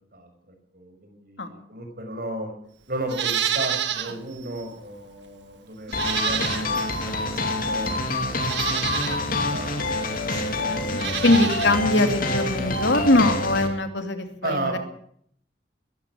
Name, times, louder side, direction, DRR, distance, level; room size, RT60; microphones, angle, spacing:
voice 1, 0.7-2.5 2.9-9.8 10.3-10.6 14.4-14.8, right 2 dB, 50° right, 5 dB, 5.9 m, -34 dB
Livestock farm animals working animals, 3.1-4.2 4.6-4.7 5.9-6.9 7.8-7.9 8.4-9.2 10.9-11.8 12.1-12.2, right 9 dB, 70° right, 1.7 m, -28 dB
sound 1, 5.9-13.7, left 2 dB, 50° left, 2.8 m, -26 dB
voice 2, 10.2-14.8, left 2 dB, 70° left, 7 dB, 2.8 m, -22 dB
21.5 x 14.0 x 8.7 m, 0.67 s
head